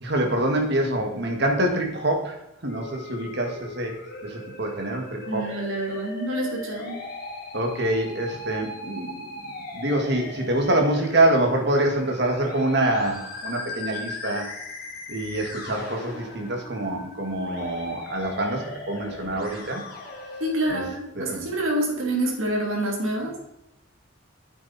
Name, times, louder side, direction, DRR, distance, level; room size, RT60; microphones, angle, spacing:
voice 1, 0.0-4.0 4.2-5.5 7.5-14.5 15.1-19.8 20.7-20.8 21.2-21.5, right 1 dB, 50° right, 2 dB, 2.1 m, -25 dB
Musical instrument, 2.7-20.7, left 2 dB, 45° left, 2.1 m, -38 dB
voice 2, 5.3-7.0 20.4-23.4, right 1 dB, 80° right, 0 dB, 3.1 m, -27 dB
9.1 x 8.5 x 4.3 m, 0.83 s
head